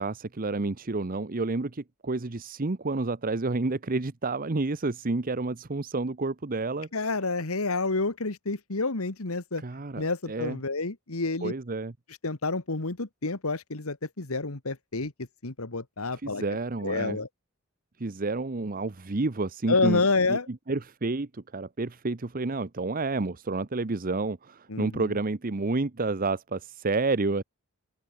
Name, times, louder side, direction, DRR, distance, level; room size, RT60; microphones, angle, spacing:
voice 1, 0.0-6.9 9.6-10.6 11.4-11.9 16.2-17.2 18.0-20.0 20.3-27.4, right 3 dB, 40° right, 0.9 m, -30 dB
voice 2, 6.9-9.6 10.0-11.5 12.2-15.1 15.4-16.4 16.8-17.3 19.7-20.5 24.7-25.0, left 3 dB, 85° left, 1.8 m, -28 dB
open air
head